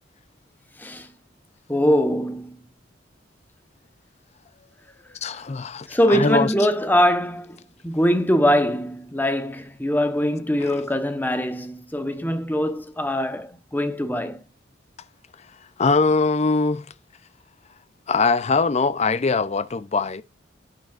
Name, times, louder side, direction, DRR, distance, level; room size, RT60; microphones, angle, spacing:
voice 1, 1.7-2.6 5.9-7.6 7.8-14.5, equal, 10° left, 1.0 m, -22 dB
voice 2, 5.2-6.5 10.6-10.7 15.8-16.9 18.1-20.2, left 4 dB, 35° left, 0.5 m, -22 dB
10.5 x 9.2 x 2.5 m
head